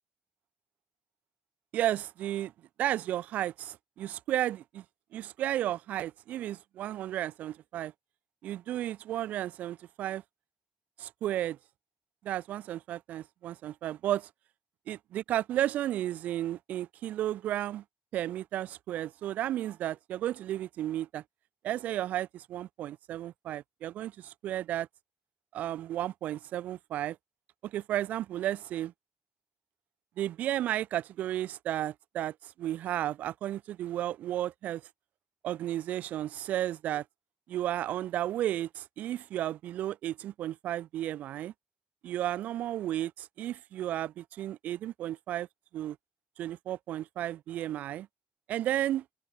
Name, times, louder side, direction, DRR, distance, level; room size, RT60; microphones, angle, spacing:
voice 1, 1.7-2.5 2.8-4.8 5.1-7.9 8.4-10.2 11.0-11.6 12.2-14.3 14.9-17.8 18.1-21.2 21.6-24.9 25.5-27.2 27.6-28.9 30.2-34.8 35.4-37.0 37.5-41.5 42.0-45.5 45.7-46.0 46.4-48.0 48.5-49.0, right 12 dB, 80° right, 5.2 m, -33 dB
hypercardioid pair, 45°, 3 cm